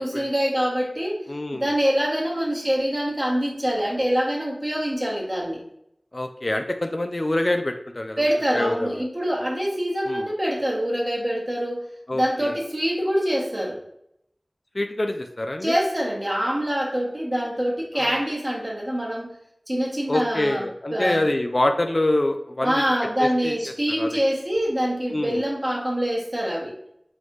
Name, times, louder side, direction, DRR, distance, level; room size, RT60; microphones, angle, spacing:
voice 1, 0.0-1.2 1.5-5.6 8.2-11.9 12.1-13.8 15.6-19.3 19.7-20.6 20.9-21.2 22.6-26.7, equal, 30° right, -3 dB, 1.3 m, -25 dB
voice 2, 1.3-1.7 6.1-8.3 8.5-9.1 10.1-10.3 12.1-12.6 14.7-15.8 17.9-18.2 20.1-22.8 23.2-23.6 24.0-24.2 25.1-25.4, left 1 dB, 50° left, 6 dB, 0.4 m, -26 dB
4.0 x 3.1 x 3.2 m, 0.76 s
wide cardioid pair, 45°, 0 cm